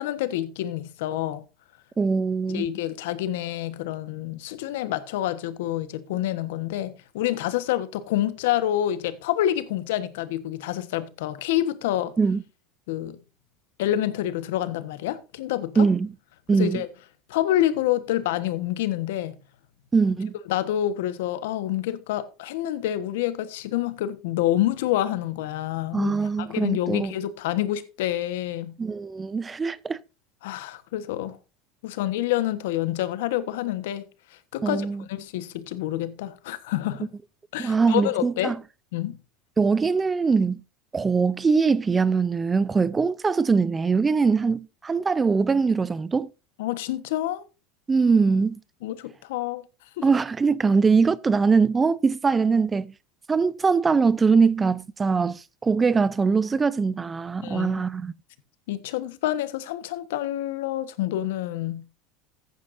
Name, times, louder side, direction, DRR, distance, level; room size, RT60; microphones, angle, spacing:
voice 1, 0.0-1.4 2.5-12.1 12.9-13.2 13.8-15.9 16.5-16.9 17.3-19.4 20.5-28.7 30.4-31.4 31.8-34.0 34.5-37.1 37.5-38.5 38.9-39.2 46.6-47.4 48.8-49.6 50.0-50.1 57.4-57.8 58.7-61.8, left 13 dB, 85° left, 1.2 m, -27 dB
voice 2, 2.0-2.6 12.2-12.4 15.8-16.1 16.5-16.8 19.9-20.3 25.9-27.1 28.8-30.0 34.6-35.0 37.6-38.6 39.6-40.6 40.9-46.3 47.9-48.6 50.0-52.9 53.3-58.1, right 5 dB, 20° right, 0.5 m, -22 dB
14.5 x 9.2 x 2.6 m
supercardioid pair, 125°, 0 cm